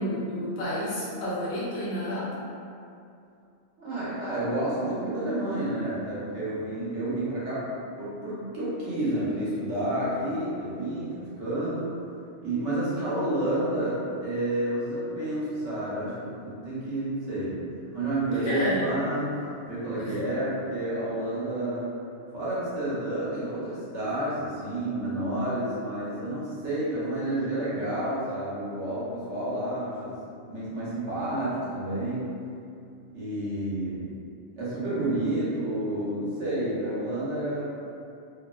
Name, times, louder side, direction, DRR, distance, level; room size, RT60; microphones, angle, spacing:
voice 1, 0.0-2.3 18.4-18.9 20.0-20.2, equal, 65° left, -9 dB, 1.0 m, -30 dB
voice 2, 3.8-7.7 8.0-11.9 12.4-17.6 17.9-19.4 19.6-21.9 22.3-30.2 30.5-32.3 33.1-34.1 34.6-37.7, right 1 dB, 75° right, -9 dB, 1.1 m, -30 dB
2.8 x 2.0 x 2.2 m, 2.5 s
omnidirectional pair, 1.2 m